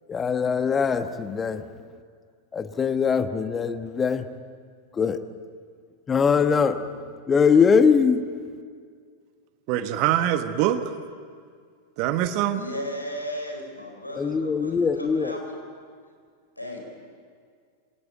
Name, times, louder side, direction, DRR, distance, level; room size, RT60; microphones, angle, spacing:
voice 1, 0.1-1.6 2.5-4.3 4.9-5.2 6.1-6.9 7.3-8.2 14.2-15.4, left 6 dB, 20° left, 10 dB, 1.2 m, -22 dB
voice 2, 9.7-10.8 12.0-12.6, right 12 dB, 45° right, 10 dB, 1.2 m, -23 dB
voice 3, 12.5-15.5 16.6-16.8, equal, 85° left, 2 dB, 4.5 m, -35 dB
25.5 x 18.0 x 9.1 m, 2.1 s
figure-of-eight pair, 90°, 0 cm